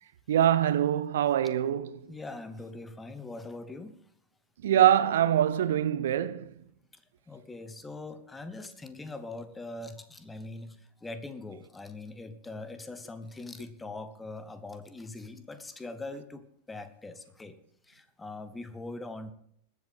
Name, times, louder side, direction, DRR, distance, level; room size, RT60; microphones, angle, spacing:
voice 1, 0.3-2.1 4.6-6.6, right 11 dB, 60° right, 0.7 m, -24 dB
voice 2, 2.1-4.0 6.9-17.6 17.8-19.3, left 2 dB, 10° left, 1.0 m, -42 dB
21.0 x 7.9 x 3.6 m
figure-of-eight pair, 90°, 0 cm